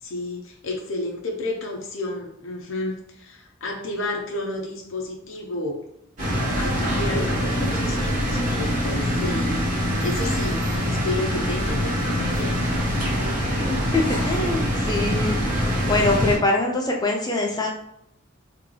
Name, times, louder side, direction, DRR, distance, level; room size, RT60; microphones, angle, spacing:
voice 1, 0.0-5.8 6.6-12.6, left 2 dB, 70° left, 0 dB, 0.7 m, -31 dB
sound 1, 6.2-16.4, equal, 40° right, 1.5 m, -24 dB
voice 2, 13.6-15.4 15.8-17.7, left 2 dB, 20° left, 0 dB, 0.6 m, -23 dB
3.1 x 2.9 x 3.8 m, 0.73 s
head